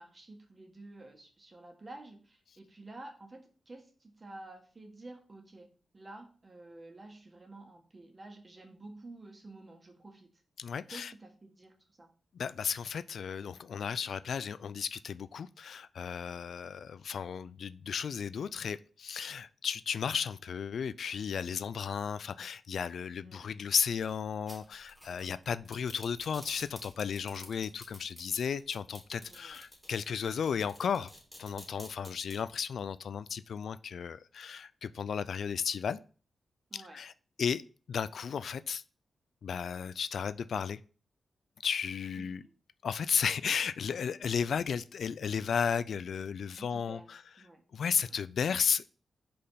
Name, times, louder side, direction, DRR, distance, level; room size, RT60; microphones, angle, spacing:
voice 1, 0.0-5.7 5.9-10.4 10.9-12.1 23.2-23.5 27.3-27.5 29.2-29.6 36.7-37.0 42.2-42.5 46.6-47.1 47.4-47.6 48.0-48.2, right 2 dB, 35° right, 1.7 m, -51 dB
voice 2, 10.6-11.1 12.3-31.1 31.4-36.0 36.7-37.1 37.4-37.6 37.9-38.8 39.4-40.8 41.6-42.4 42.8-47.2 47.7-49.0, left 7 dB, 75° left, 0.3 m, -34 dB
sound 1, 24.0-32.4, left 1 dB, 5° left, 3.3 m, -51 dB
5.3 x 4.2 x 5.6 m
cardioid pair, 80°, 0 cm